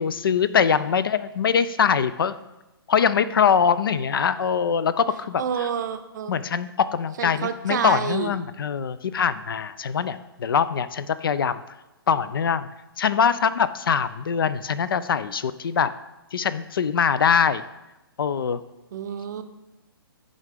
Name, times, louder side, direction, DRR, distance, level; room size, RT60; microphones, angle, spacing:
voice 1, 0.0-2.3 2.9-5.4 6.3-11.6 12.1-12.7 13.0-15.9 16.3-17.6 18.2-18.6, left 7 dB, 65° left, 15 dB, 0.4 m, -23 dB
voice 2, 5.4-6.4 7.2-8.4 18.9-19.4, right 8 dB, 50° right, 9 dB, 0.6 m, -28 dB
10.0 x 3.7 x 3.5 m, 0.99 s
figure-of-eight pair, 130°, 13 cm